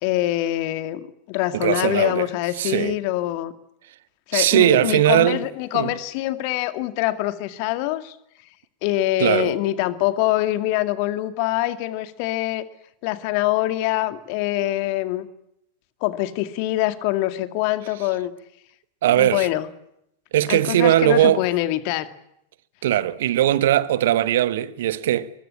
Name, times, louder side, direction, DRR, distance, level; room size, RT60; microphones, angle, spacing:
voice 1, 0.0-3.5 4.3-8.2 8.8-12.6 13.0-15.3 16.0-18.3 19.1-19.7 20.5-22.1, left 15 dB, 45° left, 2.1 m, -24 dB
voice 2, 1.5-2.3 2.6-2.9 4.3-5.4 5.7-5.9 9.2-9.5 19.0-19.5 20.3-21.5 22.8-25.3, right 12 dB, 55° right, 1.3 m, -19 dB
23.5 x 22.0 x 10.0 m
figure-of-eight pair, 90°, 0 cm